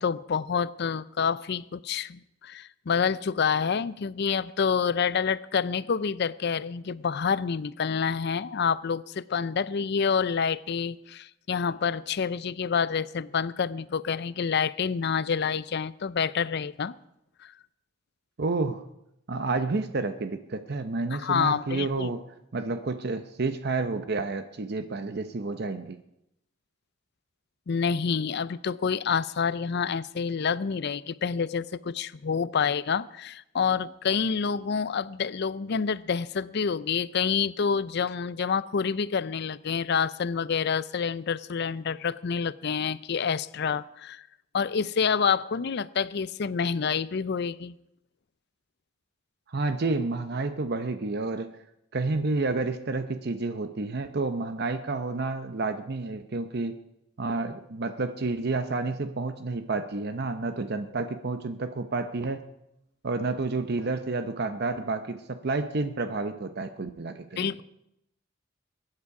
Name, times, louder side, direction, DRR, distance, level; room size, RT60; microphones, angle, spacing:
voice 1, 0.0-16.9 17.4-17.5 21.1-22.1 27.7-44.3 44.5-47.7 67.4-67.6, left 6 dB, 55° left, 0.5 m, -28 dB
voice 2, 18.4-18.8 19.3-22.2 22.5-26.0 49.5-51.5 51.9-56.8 57.2-62.4 63.0-67.5, right 3 dB, 55° right, 0.7 m, -30 dB
22.5 x 9.7 x 4.8 m
head